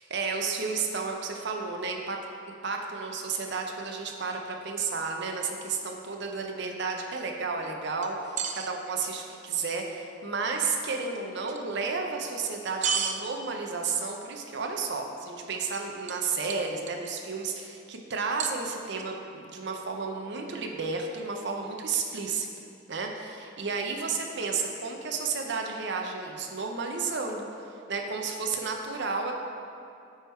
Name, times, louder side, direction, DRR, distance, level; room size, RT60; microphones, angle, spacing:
voice 1, 0.0-2.2 2.6-22.5 22.9-27.5 27.9-29.3, right 4 dB, 60° right, 2 dB, 0.7 m, -32 dB
sound 1, 8.0-8.7 11.5-11.6 12.8-13.2 15.7-16.2 16.5-17.1 18.4-19.0, right 7 dB, 35° right, 0.3 m, -31 dB
8.8 x 3.6 x 4.4 m, 2.7 s
head